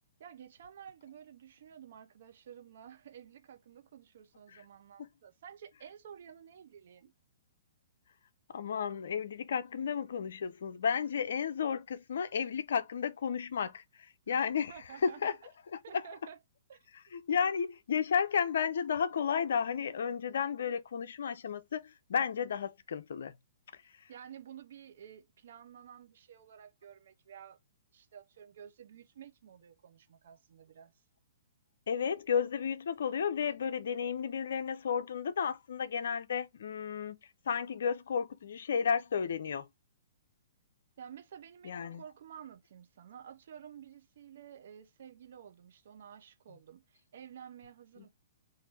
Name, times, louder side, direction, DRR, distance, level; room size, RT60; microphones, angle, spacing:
voice 1, 0.2-7.1 14.3-15.4 15.8-16.4 16.7-16.8 24.1-27.6 27.9-30.9 41.0-48.1, right 8 dB, 60° right, 0.6 m, -52 dB
voice 2, 8.5-14.7 15.0-15.3 15.9-16.0 17.1-23.3 23.7-24.1 31.9-37.2 37.5-39.7 41.6-42.0, left 7 dB, 70° left, 0.4 m, -33 dB
3.1 x 2.5 x 4.2 m
hypercardioid pair, 125°, 0 cm